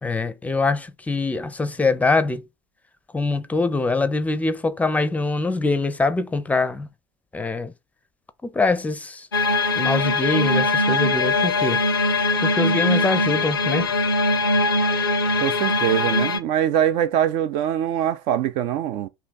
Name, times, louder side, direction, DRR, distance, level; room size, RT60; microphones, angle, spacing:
voice 1, 0.0-2.4 3.1-6.9 7.3-7.7 8.4-9.3 9.8-11.8 12.4-13.9, left 3 dB, 10° left, 0.5 m, -23 dB
sound 1, 9.3-16.4, left 2 dB, 80° left, 0.5 m, -21 dB
voice 2, 15.4-19.1, right 10 dB, 50° right, 0.4 m, -23 dB
3.3 x 2.8 x 3.9 m
figure-of-eight pair, 65°, 12 cm